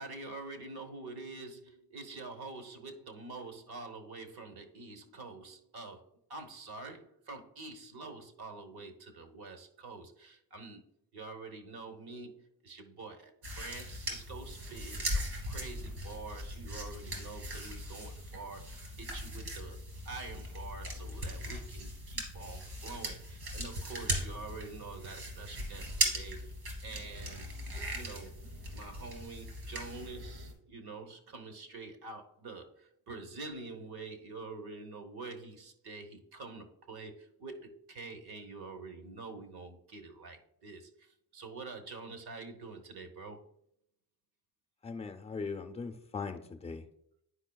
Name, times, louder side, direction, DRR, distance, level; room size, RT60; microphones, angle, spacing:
voice 1, 0.0-10.8 11.1-26.5 26.8-28.4 28.7-43.4, right 3 dB, 70° right, 6 dB, 1.0 m, -46 dB
sound 1, 13.4-30.5, right 1 dB, 90° right, 2.7 m, -39 dB
voice 2, 44.8-46.9, left 4 dB, 15° left, 3 dB, 0.5 m, -39 dB
9.8 x 5.1 x 2.3 m, 0.74 s
wide cardioid pair, 160°, 39 cm